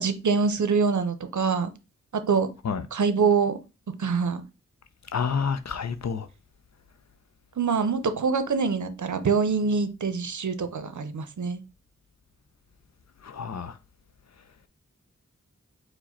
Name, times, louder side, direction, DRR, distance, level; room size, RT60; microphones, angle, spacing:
voice 1, 0.0-1.7 2.1-2.5 2.9-3.6 4.0-4.4 7.6-11.6, right 5 dB, 70° right, 0.6 m, -25 dB
voice 2, 5.1-6.3 13.2-13.7, left 6 dB, 60° left, 0.5 m, -29 dB
4.7 x 2.1 x 4.2 m
wide cardioid pair, 50°, 30 cm